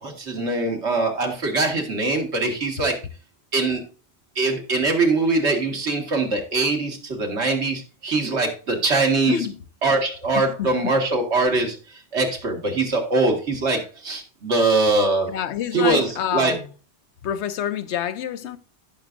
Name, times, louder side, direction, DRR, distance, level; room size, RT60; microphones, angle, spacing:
voice 1, 0.0-3.0 3.5-3.8 4.4-9.4 9.8-11.8 12.1-15.3 15.7-16.6, right 3 dB, 80° right, 2.0 m, -22 dB
voice 2, 9.3-9.6 10.3-10.9 15.3-16.6 17.2-18.6, left 9 dB, 85° left, 1.0 m, -27 dB
15.0 x 6.1 x 2.6 m
omnidirectional pair, 1.1 m